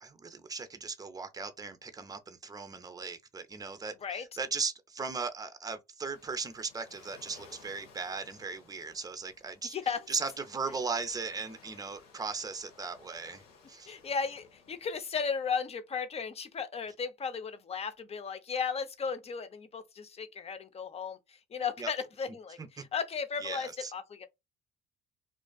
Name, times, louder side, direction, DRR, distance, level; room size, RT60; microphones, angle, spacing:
voice 1, 0.0-9.7 10.1-13.4 13.7-14.0 21.8-21.9 22.6-22.7 23.4-23.9, right 4 dB, 20° right, 0.6 m, -37 dB
Waves surf, 6.0-15.1, left 5 dB, 85° left, 0.8 m, -58 dB
voice 2, 9.6-10.1 13.9-24.3, left 6 dB, 35° left, 0.6 m, -35 dB
2.5 x 2.3 x 2.3 m
hypercardioid pair, 65°, 19 cm